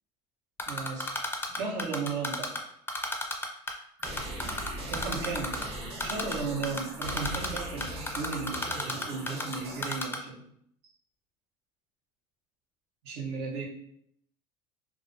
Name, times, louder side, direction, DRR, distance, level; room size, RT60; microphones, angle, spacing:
Typing, 0.6-2.6 2.9-3.7 4.0-5.6 6.0-6.3 6.6-9.5 9.8-10.2, left 2 dB, 15° left, 0.4 m, -32 dB
voice 1, 0.7-1.1 1.5-2.5 4.9-5.6 6.0-10.5 13.0-13.7, right 4 dB, 85° right, -1 dB, 0.7 m, -35 dB
sound 1, 4.0-10.0, right 1 dB, 40° right, 0.6 m, -39 dB
2.4 x 2.1 x 2.4 m, 0.69 s
supercardioid pair, 95°, 15 cm